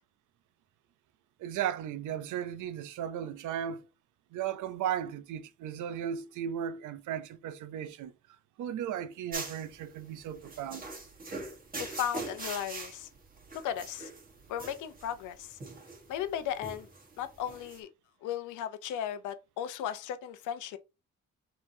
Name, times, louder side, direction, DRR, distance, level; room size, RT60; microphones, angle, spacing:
voice 1, 1.4-3.8 4.3-8.1 8.6-10.8, right 9 dB, 80° right, 0.6 m, -36 dB
sound 1, 9.3-17.8, right 3 dB, 30° right, 1.4 m, -43 dB
voice 2, 11.8-13.1 13.6-14.1 14.5-15.6 16.1-16.9 17.2-17.9 18.2-20.8, left 10 dB, 90° left, 0.6 m, -36 dB
5.3 x 3.0 x 2.7 m
cardioid pair, 90°, 30 cm